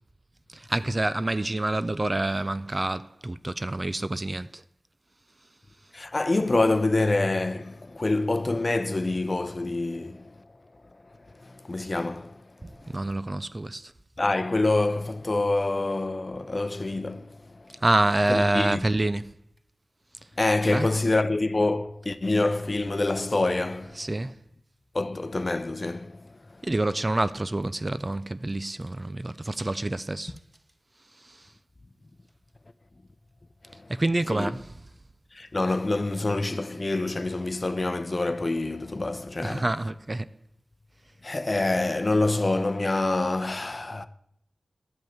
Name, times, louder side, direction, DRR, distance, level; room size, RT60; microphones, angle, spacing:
voice 1, 0.5-4.6 12.6-13.9 17.8-19.3 20.7-20.9 24.0-24.4 26.6-30.3 31.2-31.4 33.9-34.7 39.4-40.3, right 2 dB, 25° right, 0.3 m, -27 dB
voice 2, 5.9-10.3 11.4-12.4 12.8-12.9 14.2-17.3 18.3-18.8 20.4-24.0 24.9-26.1 34.3-34.5 35.3-39.7 41.2-44.1, left 2 dB, 30° left, 0.7 m, -26 dB
12.0 x 5.4 x 7.7 m
wide cardioid pair, 105°, 0 cm